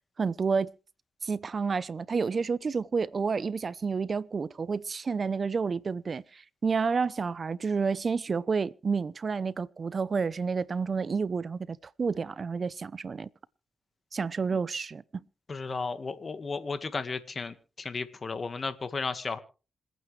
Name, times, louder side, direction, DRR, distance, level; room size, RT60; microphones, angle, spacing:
voice 1, 0.2-0.7 1.2-13.3 14.1-15.0, right 5 dB, 45° right, 0.7 m, -30 dB
voice 2, 15.5-19.4, left 4 dB, 45° left, 1.7 m, -34 dB
27.0 x 9.2 x 3.3 m
cardioid pair, 75°, 0 cm